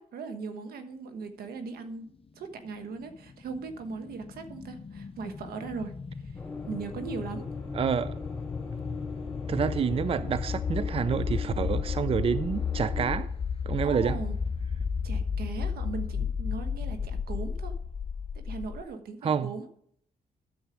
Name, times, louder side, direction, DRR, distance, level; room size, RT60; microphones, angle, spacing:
voice 1, 0.0-2.1 2.3-6.4 6.7-7.5 13.8-14.4 15.0-17.7 18.3-19.7, right 4 dB, 80° right, 1.2 m, -39 dB
sound 1, 2.9-18.8, left 6 dB, 35° left, 0.8 m, -33 dB
sound 2, 6.4-13.2, left 4 dB, 10° left, 2.6 m, -41 dB
voice 2, 7.7-8.1 9.5-13.3 13.7-14.2 19.2-19.5, right 7 dB, 40° right, 0.4 m, -28 dB
9.5 x 7.2 x 5.0 m
cardioid pair, 70°, 16 cm